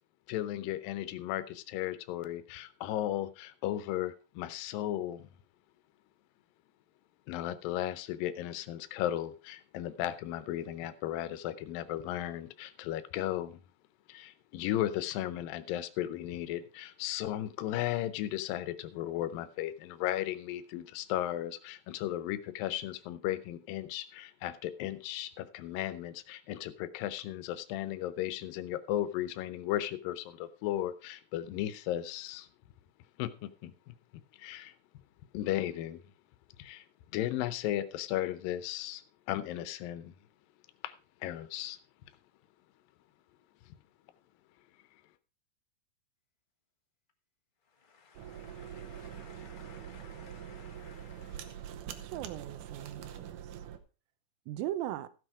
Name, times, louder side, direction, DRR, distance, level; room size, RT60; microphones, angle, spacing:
voice 1, 0.3-5.3 7.3-13.6 14.1-32.5 33.2-33.9 34.4-34.7 35.3-36.0 36.6-36.8 37.1-39.0 39.3-40.1 40.8-40.9 41.2-41.8, left 13 dB, 85° left, 2.5 m, -35 dB
voice 2, 47.7-51.7, left 5 dB, 30° left, 0.8 m, -56 dB
sound 1, 48.2-53.8, right 10 dB, 70° right, 2.3 m, -44 dB
voice 3, 52.0-53.4 54.5-55.1, right 13 dB, 85° right, 2.5 m, -38 dB
14.5 x 6.3 x 4.7 m
omnidirectional pair, 4.0 m